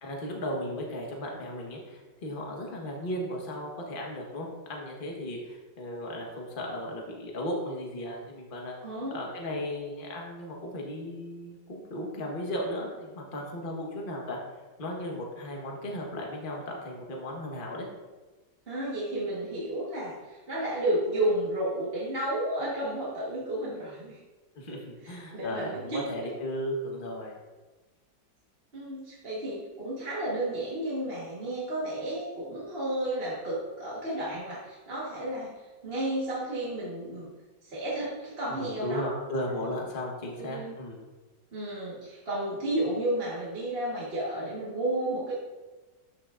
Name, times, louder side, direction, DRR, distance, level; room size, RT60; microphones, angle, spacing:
voice 1, 0.0-8.7 9.1-14.4 14.8-17.9 24.5-27.4 38.5-41.0, left 1 dB, 30° left, -1 dB, 1.3 m, -36 dB
voice 2, 8.8-9.2 18.7-24.2 24.7-26.3 28.7-37.3 37.6-39.2 40.2-40.7 41.5-45.3, right 1 dB, 35° right, -7 dB, 1.5 m, -32 dB
12.5 x 5.9 x 2.5 m, 1.2 s
omnidirectional pair, 1.9 m